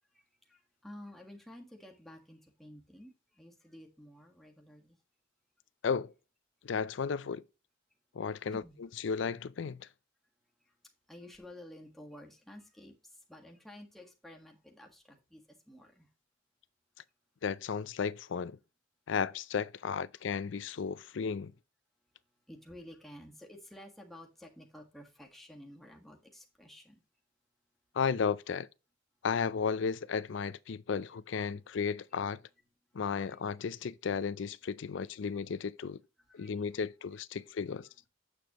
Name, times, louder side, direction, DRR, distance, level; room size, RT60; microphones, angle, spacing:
voice 1, 0.1-5.0 8.5-8.8 10.6-10.7 11.1-16.1 22.5-27.0 32.1-32.2 32.9-33.4 35.3-35.4 36.3-36.7 37.7-38.1, left 1 dB, ahead, 1.5 m, -52 dB
voice 2, 6.6-7.4 8.1-8.6 9.0-9.9 17.4-18.6 19.1-21.5 27.9-28.7 29.2-32.4 32.9-36.0 36.3-37.9, left 6 dB, 70° left, 0.4 m, -34 dB
7.9 x 7.0 x 2.9 m
head